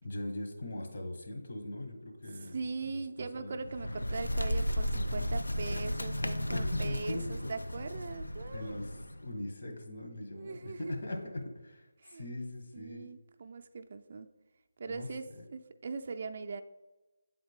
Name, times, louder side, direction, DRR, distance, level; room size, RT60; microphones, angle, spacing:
voice 1, 0.0-2.6 2.9-3.7 6.5-7.5 8.5-13.1 14.8-15.4, left 1 dB, 60° left, 1 dB, 1.4 m, -40 dB
voice 2, 2.5-8.7 10.3-10.8 12.0-12.3 12.7-14.3 14.8-15.2 15.5-16.6, right 4 dB, 45° right, 6 dB, 0.4 m, -40 dB
Bird, 3.5-9.3, equal, 90° left, 0.5 m, -34 dB
7.7 x 4.0 x 3.6 m, 1.1 s
figure-of-eight pair, 160°, 0 cm